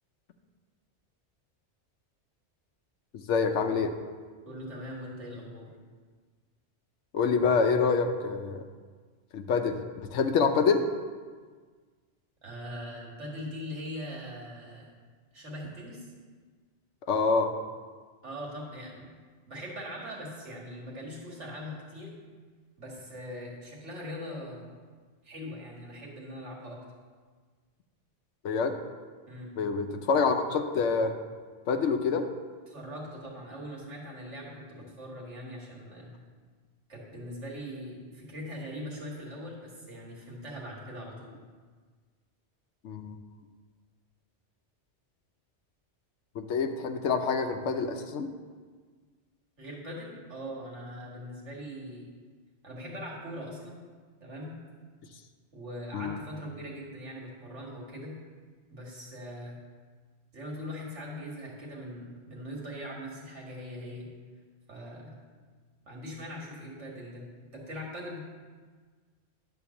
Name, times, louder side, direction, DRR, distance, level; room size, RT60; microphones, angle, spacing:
voice 1, 3.3-3.9 7.1-8.6 9.3-9.8 10.1-10.9 17.1-17.5 28.4-28.8 29.6-31.1 31.7-32.3 42.8-43.2 46.3-48.3 55.9-56.2, left 5 dB, 90° left, 6 dB, 1.0 m, -26 dB
voice 2, 4.4-5.7 12.4-14.9 15.3-16.1 18.2-19.1 19.5-22.1 22.8-24.7 25.2-26.8 29.3-29.5 32.7-36.1 36.9-41.3 49.6-52.1 52.6-53.8 54.2-54.5 55.5-58.2 58.7-59.6 60.3-64.1 64.7-65.2 65.8-68.2, equal, 80° right, -2 dB, 2.2 m, -41 dB
10.5 x 3.8 x 7.0 m, 1.5 s
omnidirectional pair, 1.2 m